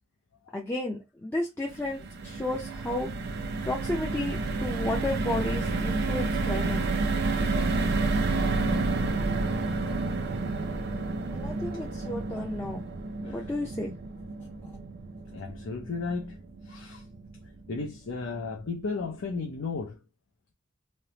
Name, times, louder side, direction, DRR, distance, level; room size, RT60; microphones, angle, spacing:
voice 1, 0.5-3.1 3.6-7.0 11.3-12.8 13.3-13.9, left 2 dB, 10° left, 0.4 m, -33 dB
sound 1, 1.7-18.0 18.4-18.5 18.8-19.0, right 3 dB, 50° right, 0.4 m, -30 dB
sound 2, 8.3-10.6, right 3 dB, 80° right, 1.0 m, -48 dB
voice 2, 15.3-16.4 16.6-17.0 17.7-20.0, left 4 dB, 75° left, 0.6 m, -34 dB
3.2 x 2.0 x 2.8 m
head